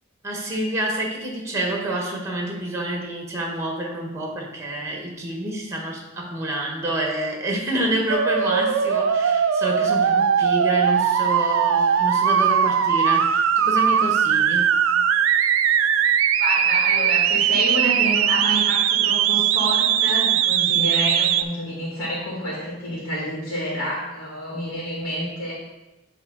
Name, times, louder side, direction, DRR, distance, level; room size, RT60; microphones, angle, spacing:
voice 1, 0.2-14.8, right 1 dB, 15° right, 1 dB, 1.1 m, -28 dB
sound 1, 8.1-21.4, right 8 dB, 70° right, 0.3 m, -20 dB
voice 2, 16.4-25.5, equal, 80° left, -6 dB, 2.3 m, -28 dB
9.9 x 3.4 x 3.8 m, 1.0 s
head